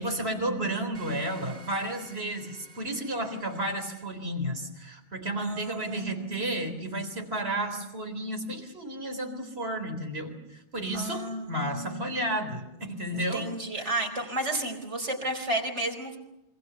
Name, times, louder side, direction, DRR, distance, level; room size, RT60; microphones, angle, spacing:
voice 1, 0.0-13.5 13.8-14.0, right 1 dB, 65° right, 5 dB, 4.1 m, -32 dB
sound 1, 0.9-4.0, right 3 dB, 40° right, 3.8 m, -51 dB
voice 2, 5.4-6.9 10.9-12.2 13.1-16.2, right 1 dB, 90° right, 3 dB, 4.9 m, -33 dB
27.5 x 24.5 x 6.9 m, 0.90 s
omnidirectional pair, 1.2 m